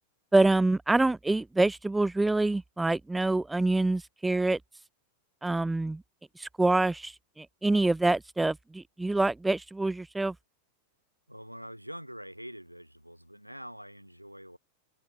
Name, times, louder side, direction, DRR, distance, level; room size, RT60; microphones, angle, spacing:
voice 1, 0.3-4.6 5.4-6.0 6.4-10.3, right 2 dB, 5° right, 0.3 m, -26 dB
voice 2, 11.3-14.6, equal, 90° right, 3.5 m, -45 dB
figure-of-eight pair, 90°, 0 cm